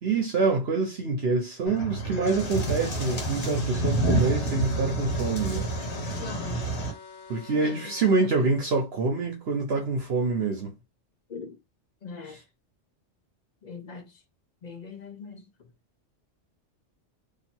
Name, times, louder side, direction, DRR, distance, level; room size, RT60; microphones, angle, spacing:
voice 1, 0.0-5.7 7.3-10.7, right 3 dB, 60° right, 1.0 m, -26 dB
sound 1, 1.7-6.9, right 2 dB, 65° left, 1.4 m, -28 dB
sound 2, 4.1-8.2, left 6 dB, 85° left, 1.1 m, -45 dB
voice 2, 6.2-6.8 7.5-8.0 8.3-8.5 11.3-11.6 12.0-12.4 13.6-14.2 14.6-15.7, left 5 dB, 45° left, 0.7 m, -41 dB
2.9 x 2.7 x 4.3 m
omnidirectional pair, 1.2 m